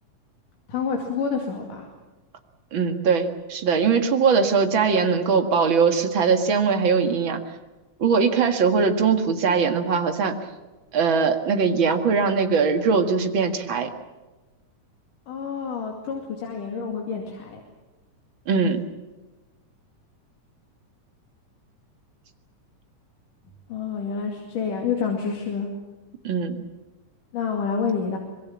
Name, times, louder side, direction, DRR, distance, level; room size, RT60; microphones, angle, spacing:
voice 1, 0.7-1.9 15.3-17.6 23.7-25.7 27.3-28.2, left 6 dB, 85° left, 1 dB, 4.0 m, -28 dB
voice 2, 2.7-7.4 8.0-10.4 10.9-13.9 18.5-18.8 26.2-26.6, right 5 dB, 45° right, 6 dB, 2.2 m, -21 dB
25.0 x 22.0 x 7.3 m, 1.2 s
omnidirectional pair, 3.6 m